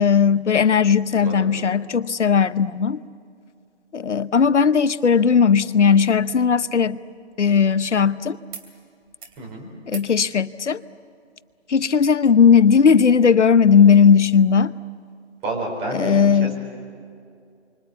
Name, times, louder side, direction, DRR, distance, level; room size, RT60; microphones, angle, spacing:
voice 1, 0.0-3.0 3.9-7.0 7.4-8.4 9.9-10.8 11.7-14.7 15.9-16.5, left 6 dB, 80° left, 0.9 m, -17 dB
voice 2, 1.1-1.5 9.4-9.7 15.4-16.5, right 2 dB, 15° right, 4.6 m, -30 dB
sound 1, 6.3-8.1 8.5-8.7 9.0-9.4 9.8-10.2 11.5-11.6, right 6 dB, 30° right, 2.6 m, -44 dB
27.0 x 24.5 x 8.3 m
figure-of-eight pair, 155°, 35 cm